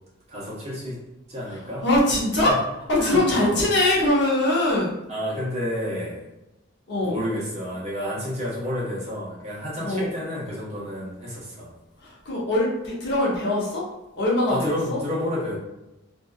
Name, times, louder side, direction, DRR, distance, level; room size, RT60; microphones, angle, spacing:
voice 1, 0.3-1.0 1.3-1.9 2.5-2.6 3.0-3.6 5.1-6.3 7.0-11.7 14.5-15.6, equal, 35° right, -6 dB, 0.9 m, -30 dB
voice 2, 1.8-2.6 2.9-4.9 6.9-7.2 9.8-10.1 12.0-13.8 14.2-15.0, left 1 dB, 60° left, -5 dB, 0.8 m, -22 dB
2.6 x 2.4 x 2.3 m, 0.96 s
head